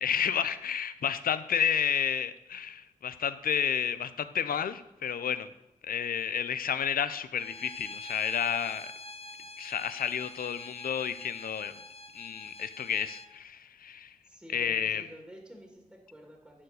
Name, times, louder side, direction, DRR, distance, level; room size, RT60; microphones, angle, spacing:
voice 1, 0.0-5.5 5.8-8.9 9.6-11.7 12.1-14.1 14.5-15.0, left 8 dB, 80° left, 13 dB, 0.5 m, -31 dB
Bowed string instrument, 7.4-13.3, left 2 dB, 45° left, 0.8 m, -46 dB
voice 2, 14.2-16.6, equal, 5° right, 1 dB, 2.1 m, -50 dB
11.0 x 4.5 x 6.5 m, 0.88 s
cardioid pair, 55°, 15 cm